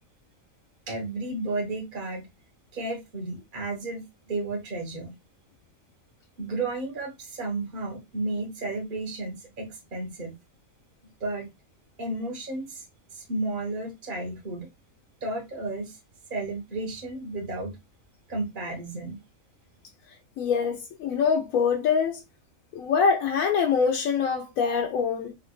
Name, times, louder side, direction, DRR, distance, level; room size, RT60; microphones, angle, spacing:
voice 1, 0.9-2.3 2.7-5.1 6.4-10.3 11.2-11.5 12.0-12.8 13.1-14.7 15.2-16.0 16.3-17.8 18.3-19.2, right 2 dB, 40° right, 1.2 m, -32 dB
voice 2, 20.4-22.2 22.7-25.3, left 6 dB, 75° left, 1.0 m, -24 dB
3.4 x 3.0 x 2.2 m
omnidirectional pair, 1.5 m